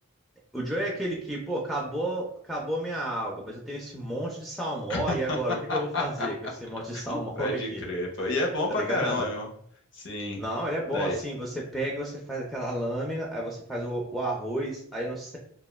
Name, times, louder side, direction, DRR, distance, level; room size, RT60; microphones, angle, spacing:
voice 1, 0.5-6.3 6.6-7.9 8.7-9.3 10.4-15.4, right 1 dB, ahead, -3 dB, 0.3 m, -32 dB
voice 2, 4.9-5.4 5.7-6.3 6.9-7.0 7.4-9.5 9.9-10.4 10.9-11.2, left 2 dB, 55° left, 0 dB, 0.6 m, -30 dB
3.2 x 2.1 x 2.2 m, 0.63 s
head